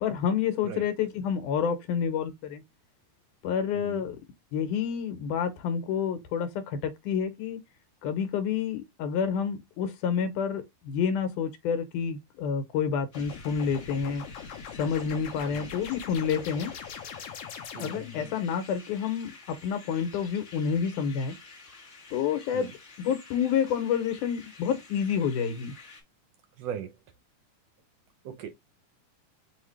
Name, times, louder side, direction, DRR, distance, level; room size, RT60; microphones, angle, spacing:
voice 1, 0.0-2.6 3.4-4.2 4.5-7.6 8.0-14.2 14.8-16.7 17.8-21.4 22.1-22.7 23.0-25.7, left 7 dB, 85° left, 2.3 m, -29 dB
voice 2, 3.7-4.1 15.5-15.7 17.7-18.1 22.5-22.7 26.6-27.0 28.2-28.5, right 9 dB, 80° right, 1.5 m, -39 dB
sound 1, 13.1-18.3, left 7 dB, 65° left, 1.6 m, -42 dB
sound 2, 13.1-26.0, left 4 dB, 40° left, 1.0 m, -50 dB
5.7 x 2.8 x 3.2 m
omnidirectional pair, 3.6 m